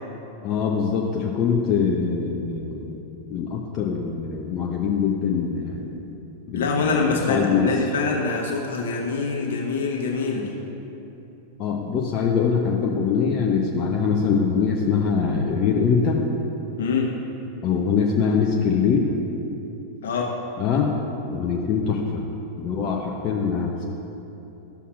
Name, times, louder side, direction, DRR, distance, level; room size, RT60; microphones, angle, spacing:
voice 1, 0.4-3.0 3.3-6.0 6.5-7.7 11.6-16.2 17.6-19.1 20.6-20.9 21.3-22.2 22.6-23.8, left 6 dB, 35° left, -1 dB, 0.7 m, -23 dB
voice 2, 6.5-10.5 16.8-17.1 20.0-20.3, left 4 dB, 60° left, -1 dB, 1.2 m, -24 dB
13.0 x 6.9 x 2.4 m, 3.0 s
figure-of-eight pair, 90°, 0 cm